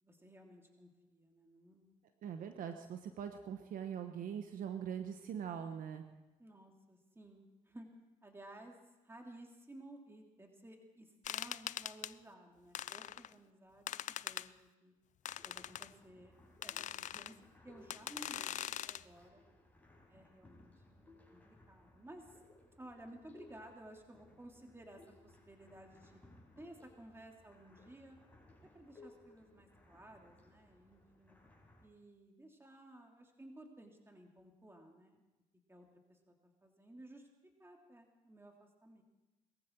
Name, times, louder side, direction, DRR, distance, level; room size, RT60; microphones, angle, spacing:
voice 1, 0.0-2.0 6.4-7.9 8.2-8.8 9.0-14.9 15.4-16.3 16.6-19.5 20.1-22.4 22.8-26.2 26.6-28.2 28.6-31.4 31.8-35.2 35.7-36.3 36.6-37.3 37.6-39.0, right 1 dB, 15° right, 2 dB, 2.9 m, -56 dB
voice 2, 2.2-6.0, right 8 dB, 75° right, 7 dB, 1.1 m, -42 dB
sound 1, 11.2-12.1 12.7-13.3 13.9-14.5 15.2-15.9 16.6-17.3 17.9-19.0, left 11 dB, 60° left, 0.4 m, -42 dB
sound 2, 15.2-31.9, left 2 dB, 10° left, 5.8 m, -63 dB
21.5 x 14.5 x 4.6 m, 1.1 s
supercardioid pair, 65°, 14 cm